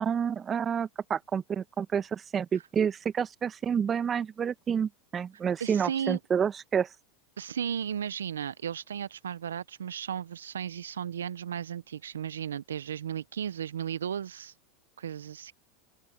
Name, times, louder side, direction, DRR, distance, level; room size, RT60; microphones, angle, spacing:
voice 1, 0.0-6.9, right 7 dB, 30° right, 1.7 m, -29 dB
voice 2, 5.6-6.2 7.4-14.5 15.0-15.5, right 8 dB, 85° right, 1.1 m, -35 dB
open air
hypercardioid pair, 95°, 0 cm